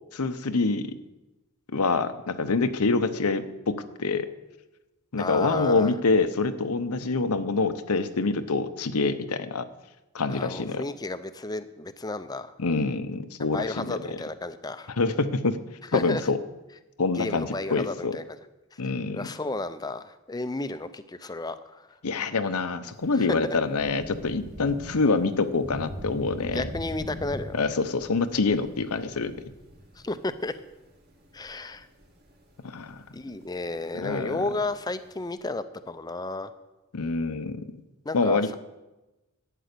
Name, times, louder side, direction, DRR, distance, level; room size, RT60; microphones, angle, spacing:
voice 1, 0.1-1.0 1.7-4.3 5.1-9.7 10.1-10.8 12.6-14.2 14.9-15.6 15.9-16.4 17.0-18.2 18.8-19.3 22.0-26.7 27.5-29.3 32.6-33.0 33.9-34.4 36.9-37.7 38.1-38.5, left 3 dB, 90° left, 11 dB, 0.8 m, -26 dB
voice 2, 5.2-5.9 10.3-12.5 13.5-14.9 15.9-16.2 17.1-18.4 18.7-18.8 19.1-21.9 23.1-23.3 26.4-27.6 30.0-30.5 31.3-31.9 33.1-36.5 38.1-38.6, left 2 dB, 15° left, 12 dB, 0.5 m, -33 dB
Thunder / Rain, 22.9-35.3, equal, 45° right, 2.3 m, -43 dB
11.5 x 9.2 x 6.7 m, 1.0 s
head